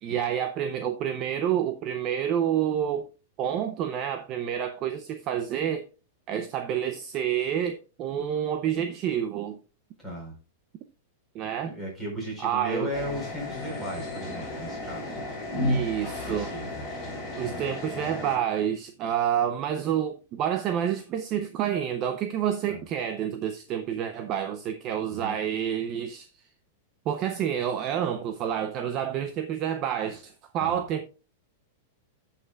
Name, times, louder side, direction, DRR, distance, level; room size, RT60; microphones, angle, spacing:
voice 1, 0.0-3.1 3.4-5.9 6.3-9.6 11.3-11.7 12.4-12.9 15.6-16.5 17.3-26.4 27.1-31.1, right 9 dB, 30° right, 0.6 m, -28 dB
voice 2, 10.0-10.4 11.6-15.3 16.2-16.7 17.4-17.7 22.7-22.8 25.1-25.4 30.6-30.8, equal, 5° right, 4.3 m, -36 dB
sound 1, 12.9-18.4, left 1 dB, 15° left, 3.6 m, -33 dB
16.0 x 5.7 x 2.3 m
supercardioid pair, 170°, 0 cm